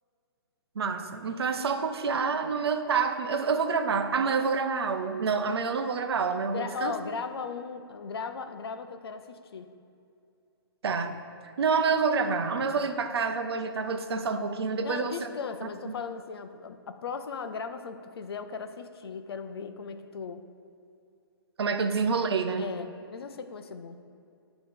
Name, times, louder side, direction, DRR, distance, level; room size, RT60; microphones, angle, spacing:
voice 1, 0.8-6.9 10.8-11.2 11.4-15.2 15.9-16.0 21.6-22.6, right 5 dB, 80° right, 8 dB, 0.6 m, -28 dB
voice 2, 6.5-9.7 14.8-20.5 22.6-24.0, left 5 dB, 75° left, 9 dB, 0.5 m, -37 dB
8.6 x 3.0 x 5.2 m, 2.5 s
hypercardioid pair, 180°, 13 cm